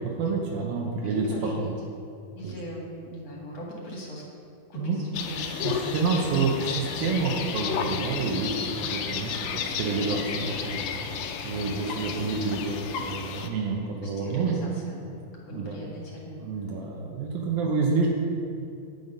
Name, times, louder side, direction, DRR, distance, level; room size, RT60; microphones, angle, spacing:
voice 1, 0.0-1.3 1.6-1.7 2.4-2.5 4.7-5.0 5.3-10.9 11.1-14.6 15.5-15.9 16.4-18.1, right 4 dB, 90° right, -1 dB, 2.7 m, -29 dB
voice 2, 1.0-1.7 2.4-4.2 4.7-5.9 6.5-6.6 7.0-7.2 7.5-7.6 7.9-8.2 14.0-15.0 15.3-16.4, equal, 50° left, -3 dB, 2.9 m, -40 dB
sound 1, 5.1-13.5, left 7 dB, 85° left, 2.4 m, -32 dB
9.3 x 8.1 x 5.4 m, 2.5 s
omnidirectional pair, 4.0 m